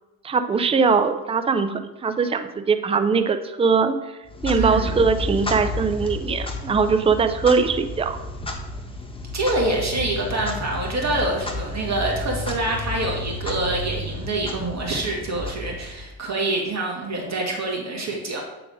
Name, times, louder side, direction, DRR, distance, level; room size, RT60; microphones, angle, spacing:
voice 1, 0.2-4.0 4.4-8.2, right 5 dB, 15° right, 9 dB, 0.5 m, -21 dB
Clock, 4.3-16.2, left 2 dB, 10° left, 1.1 m, -31 dB
voice 2, 4.5-4.9 9.3-18.4, right 2 dB, 35° right, -1 dB, 2.1 m, -26 dB
8.9 x 4.0 x 4.9 m, 1.1 s
supercardioid pair, 85°, 47 cm